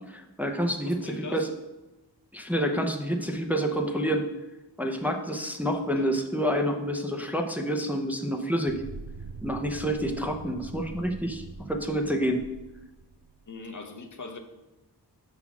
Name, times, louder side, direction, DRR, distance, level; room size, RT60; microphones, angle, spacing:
voice 1, 0.1-1.5 2.3-4.3 4.8-8.7 9.4-12.4, equal, 5° right, 3 dB, 0.7 m, -28 dB
voice 2, 0.8-1.5 6.0-6.1 13.5-14.4, left 3 dB, 45° left, 5 dB, 0.9 m, -41 dB
sound 1, 8.7-13.4, right 3 dB, 60° right, 0.6 m, -43 dB
5.6 x 4.1 x 6.0 m, 1.0 s
wide cardioid pair, 55°, 41 cm